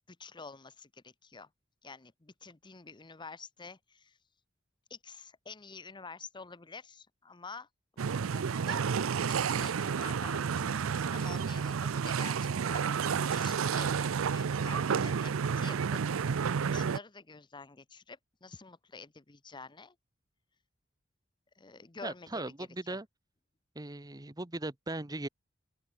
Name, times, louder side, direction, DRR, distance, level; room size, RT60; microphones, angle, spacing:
voice 1, 0.1-1.5 1.8-4.2 4.9-7.7 7.9-8.8 9.3-16.0 16.3-19.9 21.5-23.0, left 4 dB, 25° left, 0.9 m, -49 dB
sound 1, 8.0-17.0, right 6 dB, 80° right, 0.5 m, -31 dB
voice 2, 22.0-23.1 23.7-25.3, right 2 dB, 20° right, 1.1 m, -38 dB
open air
head